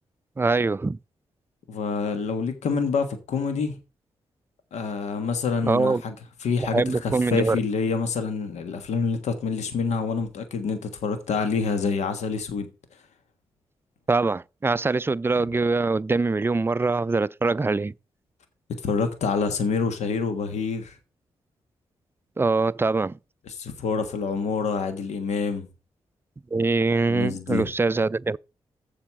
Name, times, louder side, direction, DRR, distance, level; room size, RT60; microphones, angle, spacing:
voice 1, 0.4-1.0 5.6-6.0 6.6-7.6 14.1-17.9 22.4-23.2 26.5-28.4, right 3 dB, 20° right, 0.4 m, -23 dB
voice 2, 1.7-3.8 4.7-6.1 6.4-12.7 18.8-21.0 23.5-25.7 27.1-27.7, left 5 dB, 80° left, 1.4 m, -27 dB
7.3 x 5.0 x 7.1 m
supercardioid pair, 50°, 11 cm